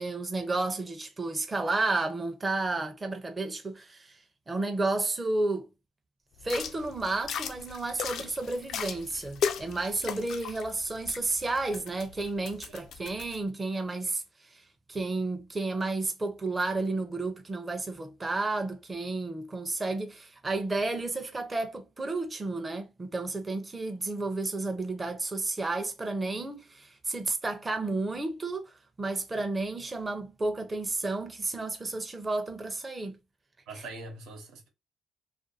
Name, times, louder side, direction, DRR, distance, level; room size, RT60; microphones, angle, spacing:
voice 1, 0.0-4.2 4.5-5.7 6.4-14.6 14.9-28.7 29.0-33.2 33.7-33.8, right 2 dB, 20° right, 0.5 m, -32 dB
sound 1, 6.4-13.4, left 7 dB, 65° left, 0.4 m, -37 dB
voice 2, 33.7-34.7, right 2 dB, 90° right, 1.0 m, -43 dB
2.6 x 2.4 x 2.6 m
cardioid pair, 100°, 0 cm